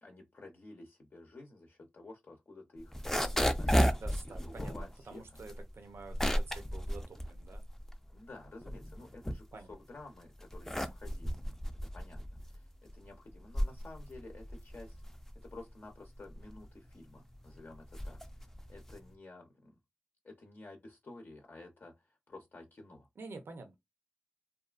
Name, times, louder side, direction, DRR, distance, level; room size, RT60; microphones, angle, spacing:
voice 1, 0.0-2.9 3.5-5.2 8.1-11.4 11.9-15.0 15.4-18.2 18.7-19.8 20.2-23.1, left 2 dB, 60° left, 0.6 m, -52 dB
sound 1, 2.8-8.1 8.5-9.9 10.4-19.1, equal, 10° left, 0.4 m, -34 dB
voice 2, 3.9-7.6 9.5-9.7 23.2-23.8, right 3 dB, 80° right, 0.6 m, -49 dB
2.6 x 2.3 x 2.4 m
wide cardioid pair, 60°, 4 cm